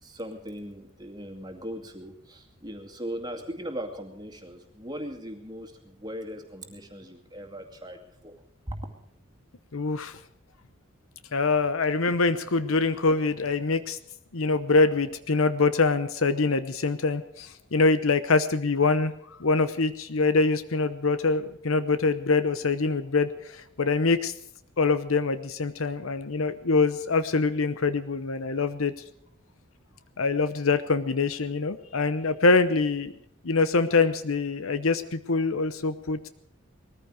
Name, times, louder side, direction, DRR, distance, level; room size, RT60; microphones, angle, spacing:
voice 1, 0.0-8.3 8.7-8.9, equal, 20° right, 4 dB, 2.3 m, -39 dB
voice 2, 9.7-10.2 11.3-14.0 14.3-19.1 19.4-24.3 24.8-28.9 30.2-33.1 33.4-36.3, left 3 dB, 80° left, 12 dB, 0.9 m, -24 dB
20.0 x 14.5 x 4.9 m, 0.69 s
head